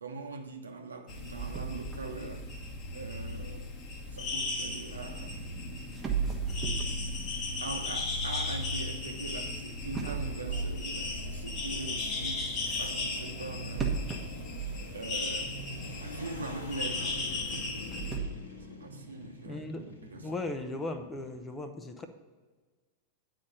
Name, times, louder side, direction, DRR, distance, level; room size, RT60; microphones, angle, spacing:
voice 1, 0.0-2.5 2.9-3.7 4.1-5.5 7.6-14.0 14.9-15.6 16.0-17.2 18.8-20.4, right 3 dB, 75° right, 0.9 m, -42 dB
sound 1, 1.1-18.2, left 2 dB, 35° left, 1.2 m, -36 dB
sound 2, 1.3-4.5 5.5-5.6 5.9-9.3 9.9-11.8 13.7-15.5 15.8-15.9 16.5-16.6 17.6-18.3, right 5 dB, 20° right, 1.1 m, -37 dB
sound 3, 10.2-21.5, left 1 dB, 70° left, 1.6 m, -46 dB
voice 2, 19.4-22.1, left 2 dB, 15° left, 0.8 m, -38 dB
9.6 x 4.2 x 6.6 m
figure-of-eight pair, 90°, 0 cm